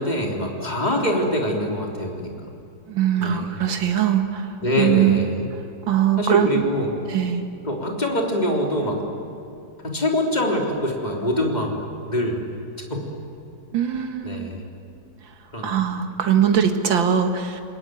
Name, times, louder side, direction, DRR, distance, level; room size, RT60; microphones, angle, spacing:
voice 1, 0.0-2.3 3.2-3.4 4.6-5.4 6.2-6.9 7.7-9.0 9.8-12.4 12.9-13.1 14.2-14.6 15.5-15.8, equal, 20° left, 0 dB, 3.6 m, -24 dB
voice 2, 2.9-5.4 5.9-6.7 7.1-7.5 13.7-14.7 15.3-15.4 15.6-17.6, right 9 dB, 85° right, 6 dB, 2.4 m, -21 dB
29.0 x 20.5 x 9.3 m, 2.6 s
omnidirectional pair, 2.0 m